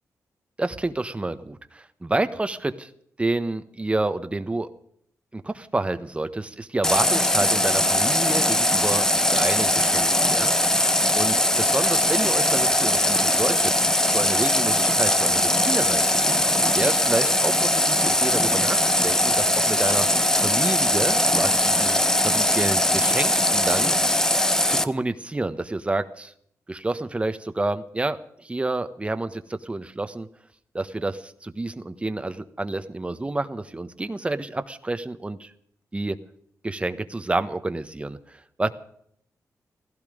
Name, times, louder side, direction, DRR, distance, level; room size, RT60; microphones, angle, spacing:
voice 1, 0.6-2.9 3.2-4.7 5.3-10.5 11.1-13.7 14.1-16.4 16.7-20.1 20.4-22.0 22.2-24.3 24.7-26.3 26.7-30.3 30.7-35.5 35.9-36.2 36.6-38.7, right 2 dB, 20° right, 11 dB, 1.3 m, -29 dB
Water tap faucet, 6.8-24.8, left 1 dB, 10° left, 0.8 m, -21 dB
16.5 x 16.0 x 5.2 m, 0.66 s
wide cardioid pair, 100°, 6 cm